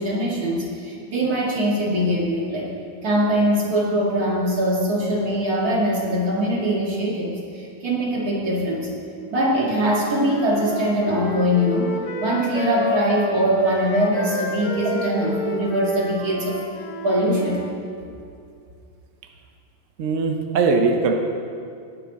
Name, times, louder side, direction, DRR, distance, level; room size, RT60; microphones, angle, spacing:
voice 1, 0.0-2.7 3.0-8.9 9.3-16.6 17.0-17.6, right 1 dB, 45° right, -4 dB, 2.4 m, -22 dB
Wind instrument woodwind instrument, 9.4-17.7, left 3 dB, 60° left, 1.4 m, -31 dB
voice 2, 20.0-21.1, right 4 dB, 70° right, 4 dB, 0.7 m, -20 dB
19.5 x 6.7 x 4.1 m, 2.4 s
omnidirectional pair, 2.3 m